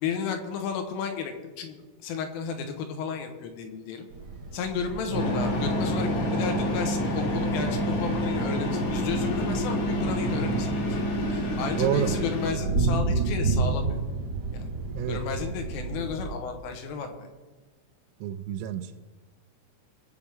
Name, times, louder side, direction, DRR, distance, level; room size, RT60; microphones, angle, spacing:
voice 1, 0.0-1.8 2.0-4.1 4.5-14.0 14.5-14.7 15.1-17.3, left 6 dB, 75° left, 5 dB, 3.6 m, -33 dB
sound 1, 4.1-16.3, right 3 dB, 50° right, 2.8 m, -32 dB
sound 2, 5.1-12.5, equal, 60° left, 4.0 m, -28 dB
voice 2, 10.2-10.6 11.8-12.1 14.9-15.2 18.2-18.9, right 10 dB, 80° right, 9 dB, 3.4 m, -29 dB
24.0 x 8.0 x 3.6 m, 1.3 s
omnidirectional pair, 6.0 m